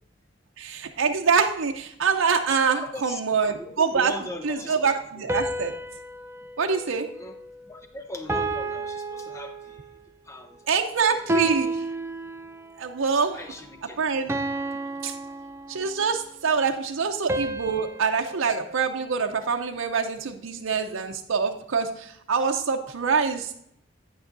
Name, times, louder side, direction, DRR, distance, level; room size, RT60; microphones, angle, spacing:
voice 1, 0.6-4.1 4.4-5.7 6.6-7.1 10.7-11.7 12.8-13.4 14.0-14.3 15.0-15.1 15.7-23.5, right 5 dB, 85° right, 4 dB, 0.6 m, -25 dB
voice 2, 2.6-3.2 3.6-5.3 7.1-7.4 7.7-9.8 10.2-10.6 11.4-11.6 13.3-14.0 16.5-16.6, left 1 dB, 15° left, 5 dB, 0.7 m, -39 dB
sound 1, 5.3-7.8 8.3-10.0 11.3-12.8 14.3-16.2 17.3-19.7, right 2 dB, 15° right, 0.3 m, -32 dB
9.0 x 8.6 x 2.6 m, 0.73 s
head